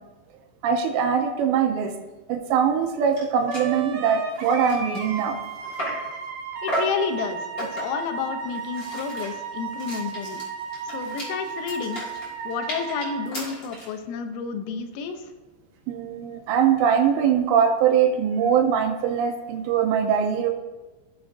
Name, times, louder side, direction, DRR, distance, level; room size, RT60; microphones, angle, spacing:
voice 1, 0.6-1.9 2.3-5.4 15.9-20.5, right 7 dB, 90° right, 2 dB, 2.5 m, -22 dB
sound 1, 2.8-2.9 3.1-3.2 3.5-3.7 4.2-6.1 6.7-7.0 7.6-8.0 8.5-13.9, equal, 35° left, 1.9 m, -35 dB
Wind instrument woodwind instrument, 3.5-13.3, right 5 dB, 75° right, 3.8 m, -34 dB
voice 2, 6.6-10.4 10.9-12.0 12.4-15.3, left 6 dB, 85° left, 5 dB, 3.3 m, -30 dB
15.5 x 7.1 x 2.6 m, 1.2 s
omnidirectional pair, 5.8 m